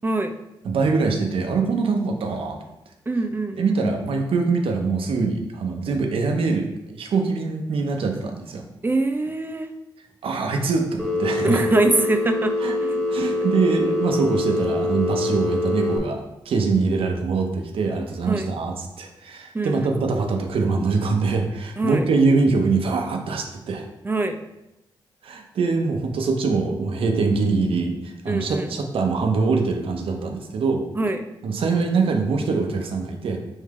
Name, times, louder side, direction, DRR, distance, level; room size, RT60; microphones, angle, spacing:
voice 1, 0.0-0.3 3.1-3.7 8.8-9.7 11.4-12.5 12.8-13.1 13.3-13.5 18.3-18.5 19.5-19.9 21.8-22.1 24.0-24.4 28.3-28.7 30.9-31.2, right 2 dB, 20° right, 7 dB, 0.5 m, -23 dB
voice 2, 0.6-2.6 3.6-8.6 10.2-11.6 12.6-12.8 13.1-23.8 25.2-30.8 31.4-33.4, right 4 dB, 75° right, 3 dB, 0.7 m, -23 dB
Telephone, 11.0-16.0, left 2 dB, 5° left, 1.4 m, -24 dB
3.7 x 2.7 x 4.7 m, 0.92 s
supercardioid pair, 50°, 9 cm